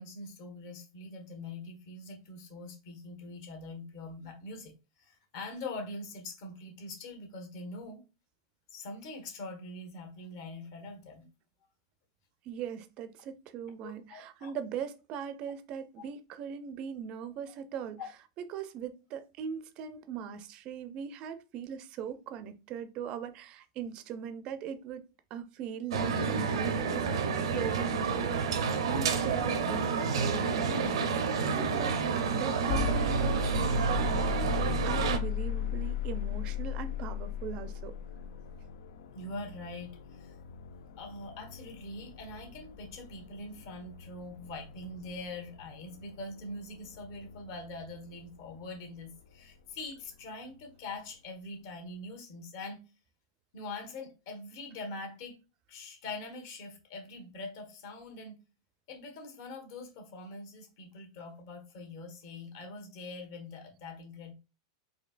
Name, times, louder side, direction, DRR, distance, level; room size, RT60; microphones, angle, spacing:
voice 1, 0.0-4.7 5.0-8.0 8.7-11.3 13.8-14.5 39.1-40.3 41.0-52.8 53.5-55.4 55.7-58.4 58.9-64.3, left 2 dB, 55° left, 1.3 m, -43 dB
voice 2, 12.4-18.0 18.5-25.0 25.3-37.9, right 8 dB, 35° right, 0.4 m, -40 dB
sound 1, 25.9-35.2, right 5 dB, 90° right, 0.6 m, -29 dB
sound 2, 32.7-48.6, left 4 dB, 75° left, 0.4 m, -37 dB
4.3 x 2.7 x 2.5 m
supercardioid pair, 155°, 3 cm